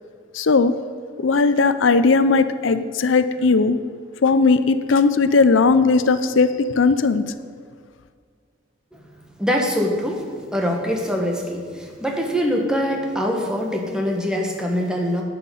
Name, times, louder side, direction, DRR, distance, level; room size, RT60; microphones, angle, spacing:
voice 1, 0.4-0.7 1.2-3.8 4.2-7.2, left 4 dB, 90° left, 12 dB, 0.6 m, -17 dB
voice 2, 9.4-10.2 10.5-11.6 12.0-15.2, equal, 5° right, 0 dB, 1.6 m, -23 dB
11.0 x 5.9 x 8.3 m, 2.1 s
head